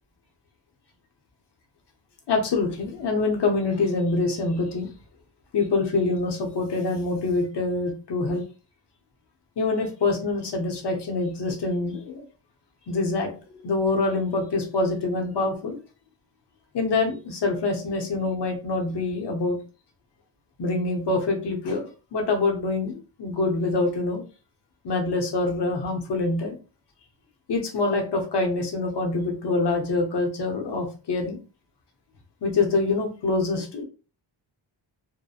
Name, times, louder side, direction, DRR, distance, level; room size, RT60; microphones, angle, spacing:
voice 1, 2.3-4.9 5.5-8.4 9.6-12.2 12.9-15.8 16.7-19.6 20.6-24.2 24.8-26.6 27.5-31.4 32.4-33.8, left 3 dB, 60° left, 3 dB, 0.8 m, -25 dB
2.8 x 2.1 x 2.3 m, 0.33 s
wide cardioid pair, 135°, 47 cm